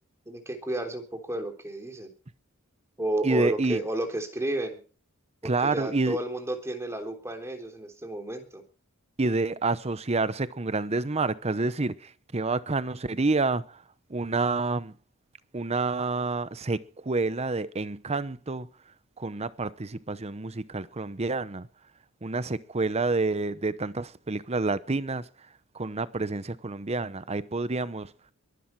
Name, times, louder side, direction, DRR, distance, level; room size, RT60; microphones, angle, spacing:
voice 1, 0.2-2.1 3.0-4.8 5.4-8.6, right 1 dB, 10° right, 3.4 m, -32 dB
voice 2, 3.2-3.8 5.4-6.2 9.2-13.8 14.1-14.9 15.5-18.7 19.2-21.7 22.2-25.3 25.7-28.1, right 3 dB, 30° right, 0.8 m, -28 dB
22.5 x 11.5 x 4.6 m
head